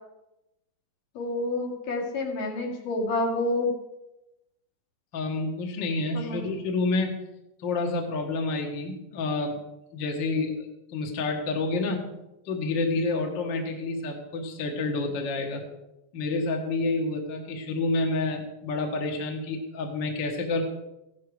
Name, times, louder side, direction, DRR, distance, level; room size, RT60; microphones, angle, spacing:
voice 1, 1.2-3.7 6.1-6.4, left 2 dB, 75° left, -2 dB, 4.3 m, -28 dB
voice 2, 5.1-7.1 7.6-9.6 9.9-12.1 12.5-15.6 16.1-20.6, left 3 dB, 45° left, 2 dB, 1.8 m, -29 dB
15.5 x 11.5 x 4.8 m, 0.93 s
omnidirectional pair, 3.8 m